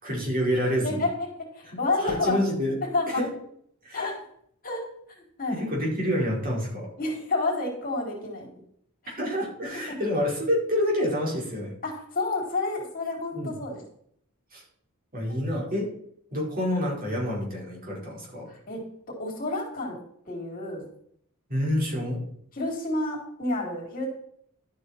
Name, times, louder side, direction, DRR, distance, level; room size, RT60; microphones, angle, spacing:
voice 1, 0.0-1.0 2.0-2.8 3.1-3.3 3.8-4.1 5.5-6.9 9.2-11.7 13.3-13.5 14.5-14.6 15.1-15.9 16.3-18.5 21.5-22.2, equal, 40° right, -2 dB, 4.6 m, -27 dB
voice 2, 1.5-2.4 2.9-3.2 3.9-4.2 4.6-4.8 5.4-5.6 7.0-8.5 9.0-9.1 9.9-10.0 11.8-13.8 15.3-15.4 18.5-18.8 19.1-20.0 20.3-20.9 22.5-24.1, left 2 dB, 40° left, -1 dB, 4.2 m, -29 dB
12.5 x 8.9 x 4.4 m, 0.66 s
head